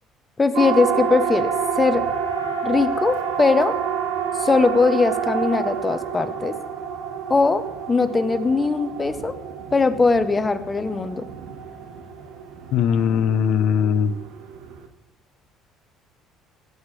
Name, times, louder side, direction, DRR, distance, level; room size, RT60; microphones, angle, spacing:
voice 1, 0.4-2.1 2.6-3.8 4.4-6.5 7.3-9.4 9.7-11.3, left 4 dB, 20° left, 10 dB, 0.8 m, -20 dB
Siren, 0.5-14.9, right 7 dB, 85° right, 1.4 m, -28 dB
voice 2, 12.7-14.1, left 7 dB, 65° left, 13 dB, 0.7 m, -20 dB
17.5 x 8.0 x 3.3 m, 0.96 s
cardioid pair, 125°, 0 cm